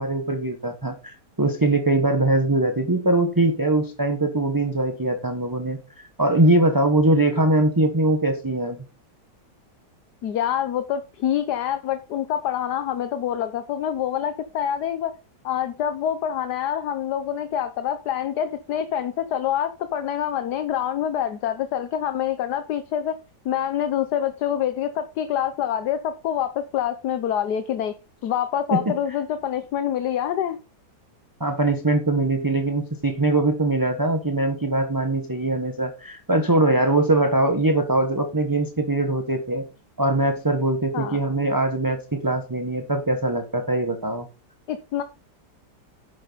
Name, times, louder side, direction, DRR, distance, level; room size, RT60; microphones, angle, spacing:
voice 1, 0.0-8.8 28.7-28.9 31.4-39.7 40.0-44.3, right 2 dB, 15° right, 4 dB, 1.2 m, -22 dB
voice 2, 10.2-15.1 15.4-23.2 23.4-27.9 28.2-30.6 40.9-41.2 44.7-45.0, left 10 dB, 75° left, 10 dB, 1.4 m, -26 dB
10.5 x 8.0 x 4.1 m, 0.31 s
omnidirectional pair, 1.8 m